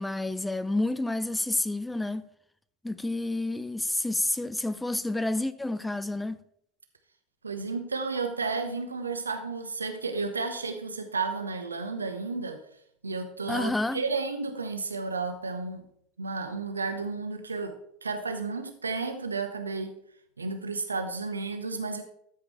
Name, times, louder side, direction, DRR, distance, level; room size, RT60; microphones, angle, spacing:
voice 1, 0.0-2.2 2.8-6.4 13.5-14.0, left 2 dB, 5° left, 0.4 m, -29 dB
voice 2, 7.4-12.6 13.0-15.8 16.2-20.0 20.4-22.0, right 4 dB, 80° right, 1.0 m, -32 dB
13.5 x 5.1 x 4.7 m
figure-of-eight pair, 80°, 0 cm